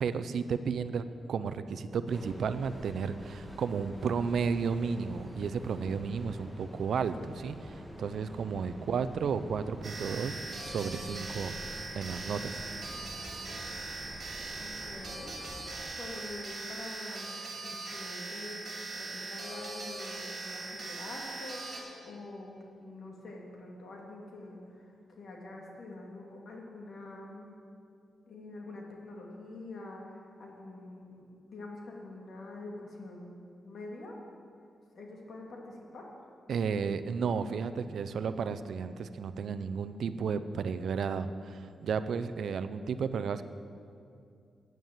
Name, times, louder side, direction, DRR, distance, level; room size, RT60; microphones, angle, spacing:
voice 1, 0.0-11.6 12.0-12.6 36.5-43.4, right 6 dB, 75° right, 12 dB, 0.5 m, -33 dB
Train, 2.1-16.0, equal, 5° left, 1.5 m, -47 dB
sound 1, 9.8-21.8, right 3 dB, 55° right, 2.7 m, -41 dB
voice 2, 14.6-15.4 16.0-17.4 17.6-27.5 28.3-33.3 33.6-34.2 34.9-36.1, left 2 dB, 65° left, -1 dB, 2.2 m, -46 dB
9.2 x 9.1 x 7.3 m, 2.4 s
cardioid pair, 100°, 0 cm